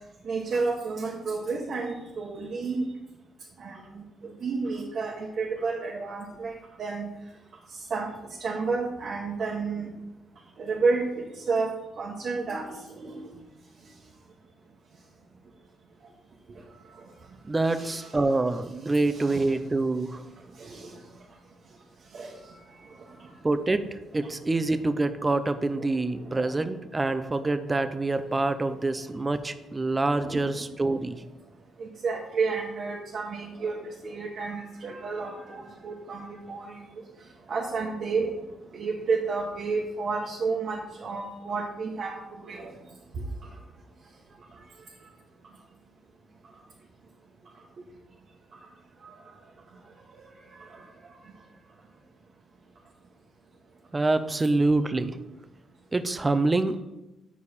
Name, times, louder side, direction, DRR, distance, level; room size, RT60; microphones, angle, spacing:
voice 1, 0.2-2.9 3.6-7.1 7.7-9.9 10.6-13.3 17.0-17.1 17.7-18.2 18.9-19.4 20.6-21.0 22.1-22.6 23.0-23.3 25.8-26.6 27.7-27.8 30.2-30.6 31.8-36.9 37.5-38.4 38.7-42.7 43.1-43.5 49.0-49.1 50.1-50.2 50.5-50.9, right 4 dB, 50° right, -2 dB, 1.0 m, -31 dB
voice 2, 17.4-20.2 23.4-31.2 53.9-55.2 55.9-56.8, right 2 dB, 20° right, 10 dB, 0.5 m, -26 dB
6.8 x 4.8 x 4.3 m, 0.98 s
cardioid pair, 90°, 0 cm